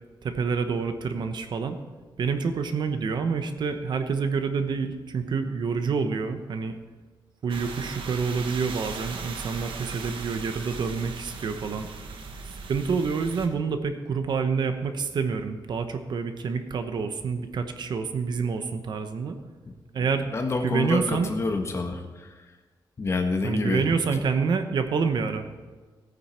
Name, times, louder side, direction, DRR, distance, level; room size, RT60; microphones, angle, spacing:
voice 1, 0.2-1.8 2.2-6.7 7.4-11.9 12.7-19.4 19.9-20.3 20.6-21.3 23.4-25.5, right 5 dB, 60° right, 8 dB, 1.0 m, -27 dB
sound 1, 7.5-13.5, right 4 dB, 90° right, 1.4 m, -38 dB
voice 2, 20.3-22.3 23.0-23.8, left 3 dB, 35° left, 4 dB, 1.4 m, -27 dB
17.5 x 9.5 x 4.4 m, 1.3 s
wide cardioid pair, 170°, 8 cm